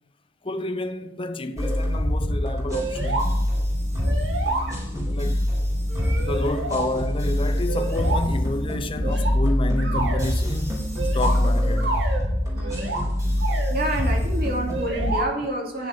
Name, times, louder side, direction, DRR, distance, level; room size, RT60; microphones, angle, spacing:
voice 1, 0.4-3.3 4.9-5.4 6.2-10.8 11.1-12.0, left 2 dB, 30° left, 0.8 m, -29 dB
sound 1, 1.6-15.2, left 1 dB, 20° right, 4.0 m, -24 dB
sound 2, 2.7-3.3 3.6-3.7 4.0-5.0 5.9-6.9 7.7-8.3 9.0-10.3 11.0-12.3 12.6-13.0 13.4-13.7 14.7-15.3, right 3 dB, 70° right, 2.4 m, -29 dB
voice 2, 12.5-13.2 13.7-15.9, right 1 dB, 55° right, 2.8 m, -29 dB
10.5 x 9.9 x 5.4 m
head